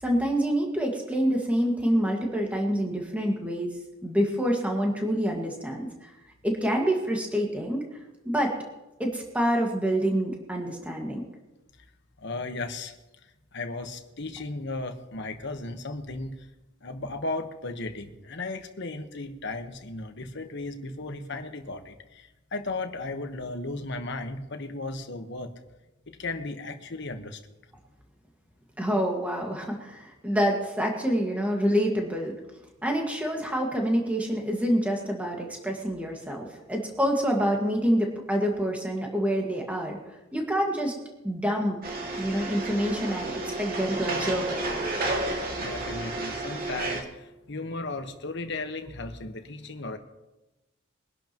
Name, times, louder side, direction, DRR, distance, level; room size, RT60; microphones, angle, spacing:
voice 1, 0.0-3.7 4.0-6.1 6.4-7.8 8.3-8.5 9.0-11.2 28.8-32.3 32.8-40.0 40.3-40.9 41.2-41.8 42.2-44.6, equal, 5° right, 0 dB, 1.8 m, -27 dB
voice 2, 12.2-12.9 13.5-16.3 16.8-25.5 26.1-27.4 45.6-50.0, left 2 dB, 60° left, 6 dB, 1.2 m, -35 dB
sound 1, 41.8-47.0, right 2 dB, 45° right, 2.2 m, -31 dB
22.5 x 11.5 x 3.0 m, 1.0 s
head